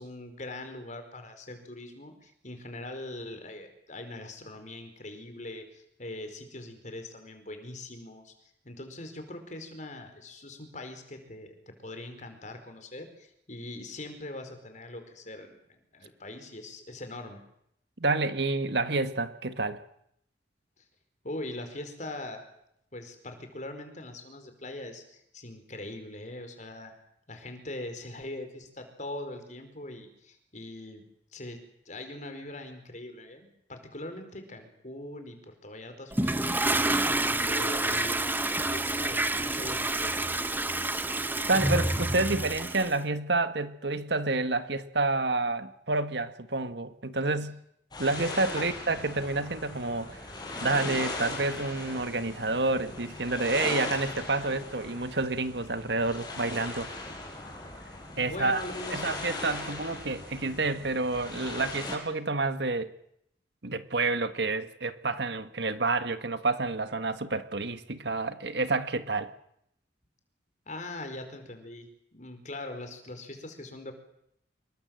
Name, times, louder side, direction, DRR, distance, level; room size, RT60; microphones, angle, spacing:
voice 1, 0.0-15.6 15.9-17.4 20.8-20.9 21.2-22.4 22.9-26.9 27.3-31.0 31.3-31.6 31.8-40.3 48.5-48.6 50.1-50.2 58.2-59.1 70.7-73.9, left 1 dB, 40° left, 4.7 m, -42 dB
voice 2, 18.0-19.8 41.5-47.6 48.0-50.2 50.6-56.9 58.2-58.6 58.9-62.9 63.6-69.3, right 3 dB, 65° right, 1.6 m, -29 dB
Toilet flush, 36.1-43.0, right 2 dB, 10° right, 1.0 m, -28 dB
sound 1, 47.9-62.0, left 2 dB, 25° left, 6.1 m, -39 dB
26.5 x 22.0 x 7.8 m
head